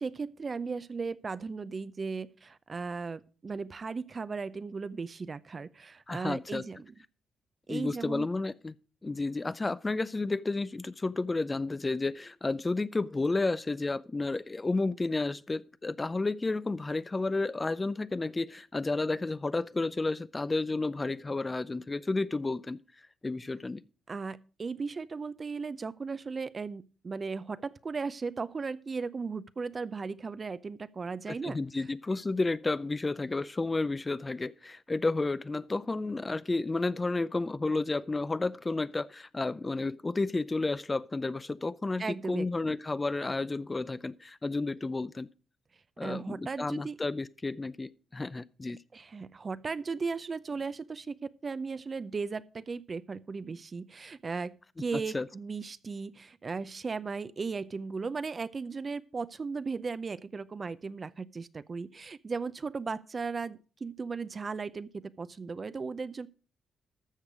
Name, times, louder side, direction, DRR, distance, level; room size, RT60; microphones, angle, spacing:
voice 1, 0.0-6.9 7.7-8.3 24.1-31.9 42.0-42.8 46.0-47.0 48.9-66.3, right 4 dB, 40° right, 0.6 m, -36 dB
voice 2, 6.1-6.6 7.7-8.7 9.0-22.8 23.2-23.8 31.3-45.3 46.0-48.8 55.1-55.3, left 3 dB, 25° left, 0.5 m, -31 dB
13.0 x 6.6 x 4.9 m
supercardioid pair, 55°, 0 cm